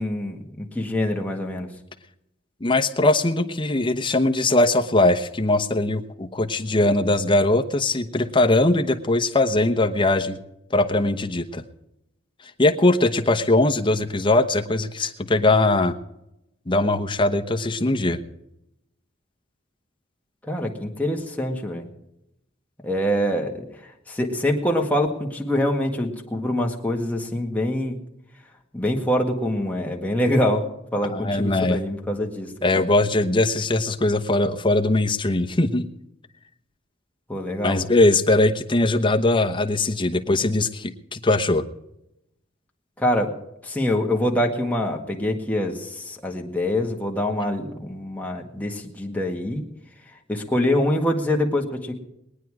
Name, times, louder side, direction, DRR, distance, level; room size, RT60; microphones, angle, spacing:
voice 1, 0.0-1.7 20.4-21.9 22.8-23.6 24.1-28.0 28.7-30.7 30.9-32.9 37.3-37.9 43.0-43.4 43.6-49.7 50.3-52.0, left 1 dB, 10° left, 0 dB, 1.8 m, -25 dB
voice 2, 2.6-10.4 10.7-11.6 12.6-15.9 16.7-18.2 31.1-31.8 32.6-35.9 37.6-41.6, left 2 dB, 25° left, 4 dB, 1.0 m, -20 dB
21.5 x 9.3 x 4.8 m, 0.85 s
head